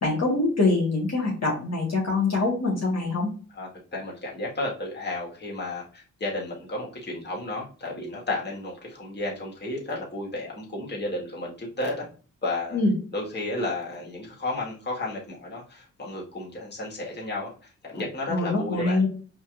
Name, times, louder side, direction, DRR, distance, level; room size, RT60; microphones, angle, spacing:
voice 1, 0.0-3.3 12.7-12.9 18.3-19.1, left 3 dB, 45° left, -3 dB, 1.6 m, -24 dB
voice 2, 3.5-12.1 12.4-12.8 13.1-17.5 17.8-19.0, left 2 dB, 30° left, -2 dB, 1.7 m, -32 dB
4.4 x 2.8 x 2.5 m, 0.38 s
hypercardioid pair, 40°, 37 cm